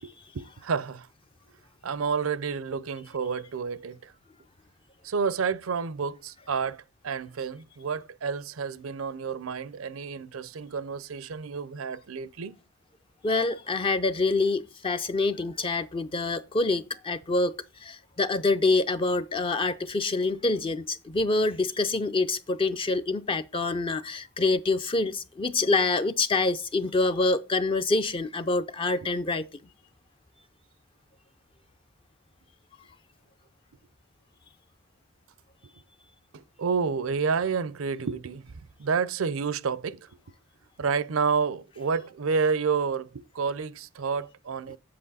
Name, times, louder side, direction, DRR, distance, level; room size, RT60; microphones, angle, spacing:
voice 1, 0.0-1.1 1.8-4.1 5.0-12.5 36.3-40.1 40.8-44.8, right 5 dB, 85° right, 0.6 m, -30 dB
voice 2, 13.2-29.4, left 3 dB, 25° left, 0.4 m, -26 dB
7.7 x 7.7 x 4.0 m
head